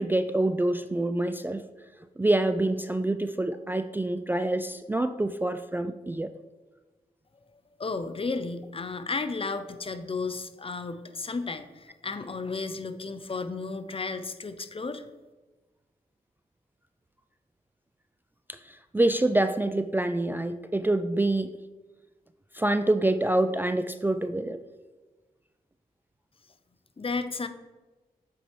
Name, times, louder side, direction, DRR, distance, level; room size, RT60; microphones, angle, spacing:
voice 1, 0.0-1.6 2.2-6.3 18.5-21.5 22.5-24.6, right 1 dB, 15° right, 9 dB, 0.3 m, -26 dB
voice 2, 7.8-15.0 27.0-27.5, left 4 dB, 35° left, 11 dB, 0.6 m, -33 dB
8.2 x 4.3 x 3.2 m, 1.2 s
cardioid pair, 50°, 16 cm